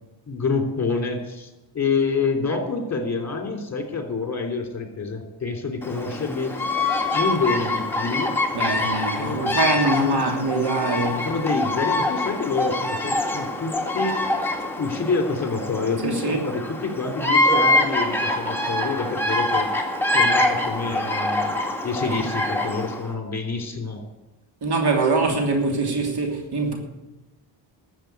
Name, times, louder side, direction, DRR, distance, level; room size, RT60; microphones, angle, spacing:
voice 1, 0.3-6.5 7.1-8.3 9.2-9.4 9.9-10.2 11.2-14.2 14.8-19.7 20.0-21.5 21.8-24.0, left 4 dB, 35° left, 3.3 m, -27 dB
Bird vocalization bird call bird song, 5.8-23.1, left 2 dB, 5° left, 2.2 m, -25 dB
voice 2, 8.5-11.3 16.0-16.4 24.6-26.8, right 3 dB, 60° right, 3.1 m, -23 dB
13.5 x 7.5 x 9.4 m
cardioid pair, 85°, 43 cm